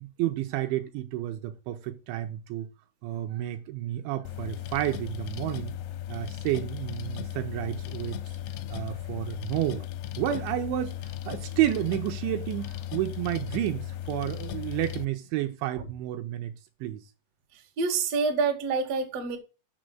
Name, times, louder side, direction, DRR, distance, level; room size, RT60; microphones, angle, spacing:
voice 1, 0.0-2.7 3.0-5.7 6.1-8.4 8.7-9.9 10.2-16.5 16.8-17.0, right 13 dB, 85° right, 2.8 m, -31 dB
sound 1, 4.3-15.1, left 12 dB, 85° left, 2.6 m, -36 dB
voice 2, 17.8-19.4, right 4 dB, 65° right, 1.5 m, -27 dB
6.9 x 6.4 x 7.6 m
omnidirectional pair, 5.7 m